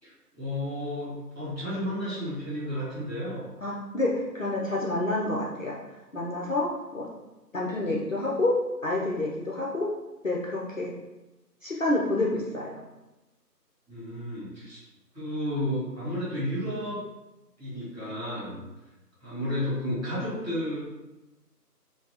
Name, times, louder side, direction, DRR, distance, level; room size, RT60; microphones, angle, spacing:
voice 1, 0.0-3.5 13.9-14.8 15.1-17.0 17.6-18.6 19.2-20.8, equal, 5° right, -18 dB, 1.3 m, -32 dB
voice 2, 3.6-5.8 6.1-7.1 7.5-9.9 10.2-10.9 11.6-12.8, left 2 dB, 55° left, -3 dB, 0.5 m, -28 dB
4.5 x 2.0 x 2.8 m, 1.0 s
figure-of-eight pair, 160°, 49 cm